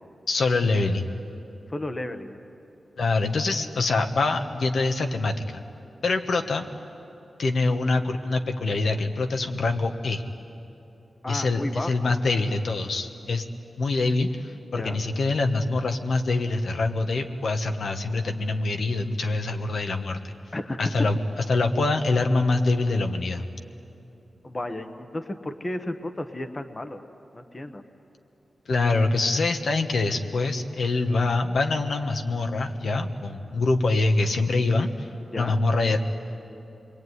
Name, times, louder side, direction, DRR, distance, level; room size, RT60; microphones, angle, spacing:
voice 1, 0.3-1.1 3.0-5.6 6.0-6.7 7.4-10.2 11.3-13.4 13.8-20.3 20.8-21.2 21.5-23.4 28.7-35.1 35.4-36.1, left 3 dB, 70° left, 5 dB, 1.5 m, -24 dB
voice 2, 1.7-2.4 11.2-12.1 14.7-15.0 20.5-21.1 24.4-27.0 27.3-27.8 35.3-35.6, left 1 dB, 25° left, 8 dB, 1.1 m, -33 dB
27.0 x 22.5 x 9.7 m, 2.9 s
wide cardioid pair, 135°, 0 cm